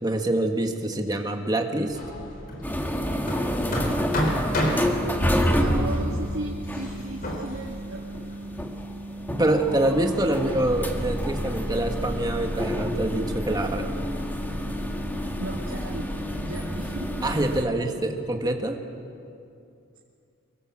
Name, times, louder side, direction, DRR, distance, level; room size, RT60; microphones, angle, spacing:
voice 1, 0.0-2.0 9.4-13.9 17.2-18.8, right 1 dB, 20° right, 3 dB, 1.8 m, -25 dB
Hammer, 1.9-8.8, equal, 45° left, 3.9 m, -32 dB
sound 1, 2.6-17.6, equal, 10° left, 1.7 m, -28 dB
voice 2, 3.7-4.3 5.1-8.0 15.4-17.3, right 1 dB, 75° right, -3 dB, 2.3 m, -36 dB
25.0 x 22.5 x 7.6 m, 2.6 s
head